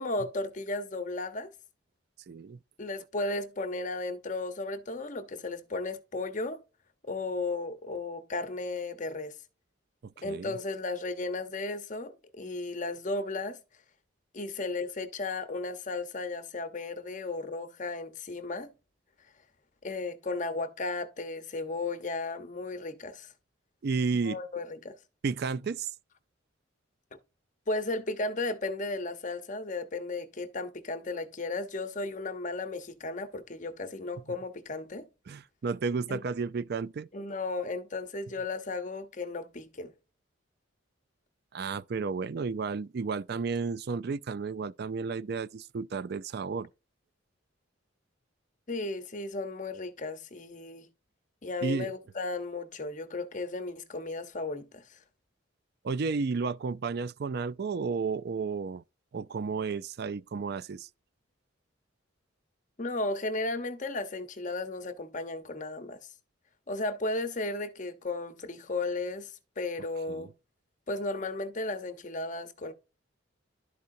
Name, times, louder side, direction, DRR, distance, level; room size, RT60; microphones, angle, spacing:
voice 1, 0.0-1.5 2.8-6.6 7.0-9.4 10.2-13.6 14.3-18.7 19.8-23.3 24.2-24.9 27.1-27.2 27.7-35.1 36.1-36.2 37.1-39.9 48.7-50.9 51.4-55.0 62.8-66.0 66.7-70.3 70.9-72.7, left 2 dB, 40° left, 0.9 m, -35 dB
voice 2, 2.3-2.6 10.0-10.6 23.8-24.4 25.2-25.9 35.3-37.1 41.5-46.7 51.6-51.9 55.8-58.8 59.1-60.9 70.1-70.3, right 4 dB, 50° right, 0.4 m, -32 dB
12.0 x 4.8 x 2.6 m
head